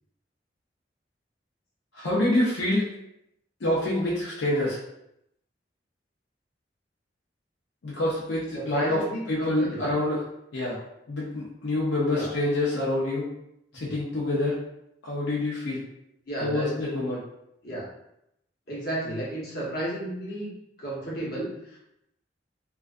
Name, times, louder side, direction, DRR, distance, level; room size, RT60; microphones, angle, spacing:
voice 1, 1.9-2.8 3.6-4.8 7.8-9.0 9.3-10.2 10.5-10.8 11.1-13.3 13.7-14.6 15.0-15.8 16.4-17.2, left 1 dB, 85° left, -6 dB, 0.5 m, -26 dB
voice 2, 8.5-9.9 12.1-12.3 13.7-13.9 16.3-16.7 17.6-17.9 18.7-20.5 20.8-21.8, right 1 dB, 55° left, -5 dB, 0.9 m, -33 dB
2.3 x 2.3 x 2.4 m, 0.81 s
head